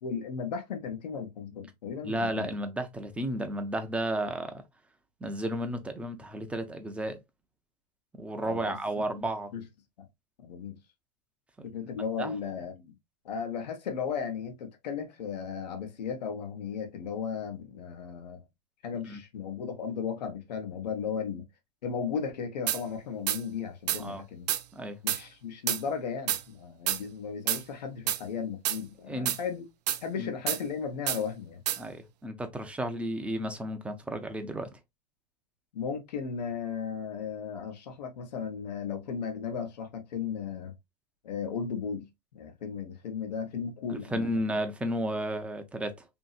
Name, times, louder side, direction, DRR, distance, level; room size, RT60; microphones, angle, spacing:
voice 1, 0.0-2.5 8.4-8.8 9.5-9.6 10.4-10.8 11.6-12.9 13.2-18.4 18.8-21.5 21.8-24.5 25.0-29.6 30.0-31.6 35.7-40.7 41.2-44.3, left 6 dB, 85° left, 0.9 m, -35 dB
voice 2, 2.0-4.6 5.2-7.2 8.2-9.5 11.6-11.7 12.2-12.4 19.1-19.2 24.0-24.2 24.7-25.0 29.1-29.3 30.2-30.3 31.8-34.7 43.9-46.1, right 1 dB, 5° right, 0.5 m, -33 dB
sound 1, 22.7-22.8 23.3-23.4 23.9-24.0 24.5-24.6 25.1-25.2 25.7-25.8 26.3-26.4 26.9-27.0 27.5-27.6 28.1-28.2 28.7-28.8 29.3-29.4 29.9-30.0 30.5-30.6 31.1-31.2 31.7-31.8, right 12 dB, 80° right, 0.4 m, -28 dB
2.7 x 2.7 x 2.3 m
supercardioid pair, 125°, 21 cm